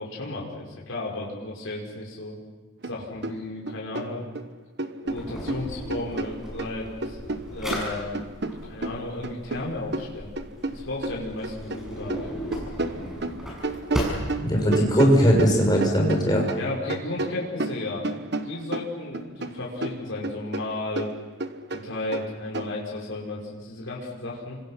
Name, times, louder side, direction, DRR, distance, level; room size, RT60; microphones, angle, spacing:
voice 1, 0.0-2.4 2.8-4.3 5.0-7.2 7.5-8.2 8.6-10.3 10.7-12.3 16.6-18.1 18.4-21.1 21.7-24.6, left 2 dB, 75° left, -3 dB, 5.9 m, -34 dB
sound 1, 2.8-3.0 3.2-4.5 4.8-6.7 7.0-11.8 12.1-16.6 16.9-19.6 19.8-22.7, right 2 dB, 50° right, 1.2 m, -32 dB
Drawer open or close, 5.1-15.0, equal, ahead, 6.5 m, -35 dB
voice 2, 14.4-16.4, equal, 20° left, -1 dB, 6.6 m, -19 dB
30.0 x 26.0 x 5.9 m, 1.2 s
head